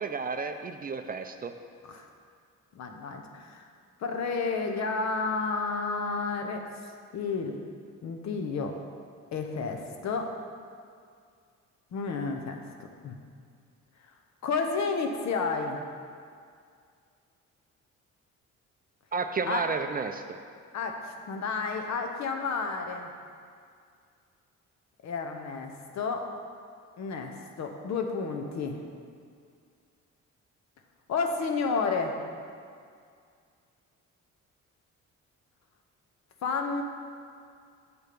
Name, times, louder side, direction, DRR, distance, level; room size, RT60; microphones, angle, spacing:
voice 1, 0.0-1.5 19.1-20.4, right 4 dB, 30° right, 7 dB, 0.4 m, -32 dB
voice 2, 2.7-3.7 4.0-6.6 7.1-7.6 8.0-8.8 9.3-10.3 11.9-12.6 13.0-13.2 14.4-15.8 19.5-19.7 20.7-23.1 25.0-26.3 27.0-28.8 31.1-32.2 36.4-36.8, left 4 dB, 65° left, 4 dB, 1.0 m, -31 dB
6.9 x 4.5 x 6.8 m, 2.2 s
cardioid pair, 90°, 30 cm